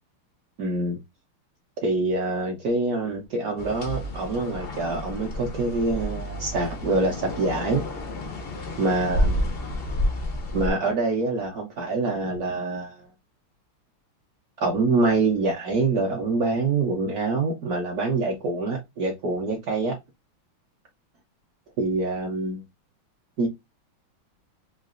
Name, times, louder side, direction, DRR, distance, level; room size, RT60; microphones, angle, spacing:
voice 1, 0.6-1.0 1.8-7.8 8.8-9.4 10.5-13.0 14.6-20.0 21.8-22.6 23.4-23.5, right 3 dB, 60° right, 1.0 m, -25 dB
sound 1, 3.6-10.7, left 1 dB, 80° left, 0.5 m, -30 dB
4.0 x 2.6 x 2.4 m
omnidirectional pair, 2.4 m